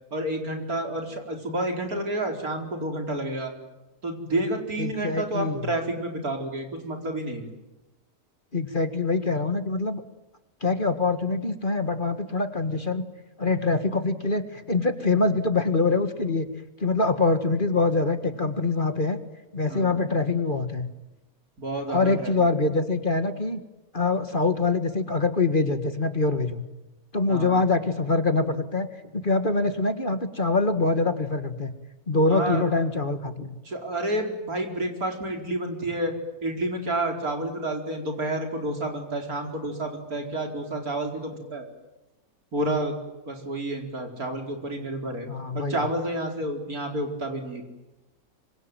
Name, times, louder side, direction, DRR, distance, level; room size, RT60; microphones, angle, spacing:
voice 1, 0.1-3.5 4.0-7.5 19.7-20.0 21.6-22.3 27.3-27.6 32.3-32.6 33.6-36.1 36.4-41.7 42.5-42.9 43.3-45.3 45.5-47.7, right 1 dB, 75° right, 3 dB, 5.1 m, -30 dB
voice 2, 4.8-5.6 8.5-10.0 10.6-13.0 13.4-16.5 16.8-19.2 19.5-20.9 21.9-23.6 23.9-26.6 27.1-28.9 29.1-31.7 32.1-33.6 45.3-45.8, left 3 dB, 35° left, 9 dB, 1.9 m, -24 dB
25.5 x 25.0 x 9.2 m, 1.0 s
omnidirectional pair, 1.6 m